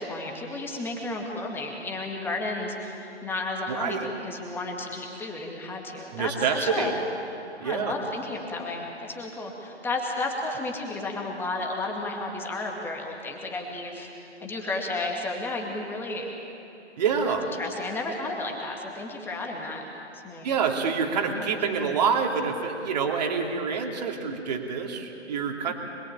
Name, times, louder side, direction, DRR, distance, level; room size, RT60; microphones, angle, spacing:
voice 1, 0.0-6.9 7.6-14.1 14.4-16.3 17.6-19.8 20.1-20.5 21.3-21.5, left 2 dB, 5° left, 0 dB, 2.1 m, -33 dB
voice 2, 3.7-4.1 6.1-6.9 7.6-7.9 17.0-17.4 20.4-25.7, right 6 dB, 35° right, 2 dB, 2.8 m, -27 dB
25.5 x 21.5 x 8.9 m, 2.9 s
figure-of-eight pair, 140°, 34 cm